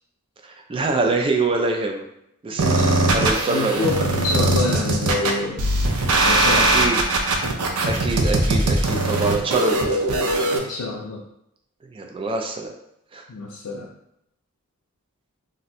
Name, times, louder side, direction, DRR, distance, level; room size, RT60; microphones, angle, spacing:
voice 1, 0.4-2.0 2.4-3.9 6.7-7.0 7.9-10.0 11.9-12.7 13.1-13.2, right 3 dB, 25° right, 3 dB, 0.3 m, -25 dB
voice 2, 2.5-3.1 3.5-5.7 6.2-6.7 10.5-11.2 13.3-13.9, left 3 dB, 75° left, -4 dB, 0.5 m, -27 dB
sound 1, 2.6-10.6, right 2 dB, 80° right, 0.5 m, -20 dB
2.5 x 2.2 x 4.0 m, 0.79 s
head